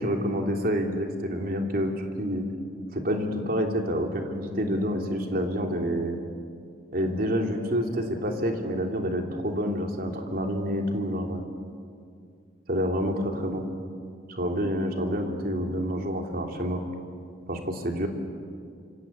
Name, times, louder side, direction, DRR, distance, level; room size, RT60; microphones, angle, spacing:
voice 1, 0.0-2.4 2.9-6.2 6.9-11.4 12.7-13.7 14.3-16.8 17.5-18.1, equal, 55° right, 3 dB, 3.2 m, -28 dB
26.5 x 26.5 x 8.6 m, 2.3 s
head